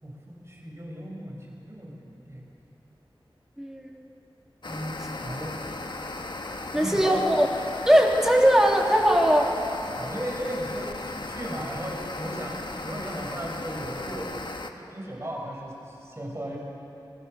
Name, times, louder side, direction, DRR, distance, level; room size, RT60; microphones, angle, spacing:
voice 1, 0.0-2.5 4.7-5.6 6.7-7.2 9.9-14.3 14.8-16.6, right 1 dB, 30° right, -2 dB, 5.5 m, -36 dB
voice 2, 3.6-4.1 6.7-7.5 7.9-9.5, equal, 5° right, -1 dB, 3.2 m, -20 dB
sound 1, 4.6-14.7, left 2 dB, 60° left, 1.4 m, -36 dB
27.0 x 21.5 x 6.6 m, 2.8 s
wide cardioid pair, 70°, 9 cm